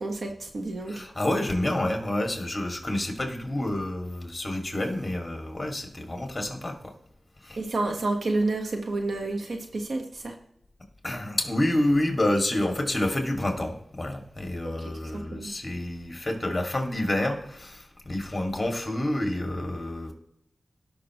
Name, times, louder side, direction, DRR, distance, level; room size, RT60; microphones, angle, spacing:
voice 1, 0.0-1.0 7.6-10.3 14.6-14.7 15.1-15.5, right 2 dB, 85° right, 3 dB, 1.4 m, -29 dB
voice 2, 0.9-6.9 7.4-7.6 11.0-20.1, left 1 dB, 25° left, 3 dB, 2.3 m, -28 dB
17.5 x 5.9 x 3.1 m, 0.74 s
wide cardioid pair, 70°, 0 cm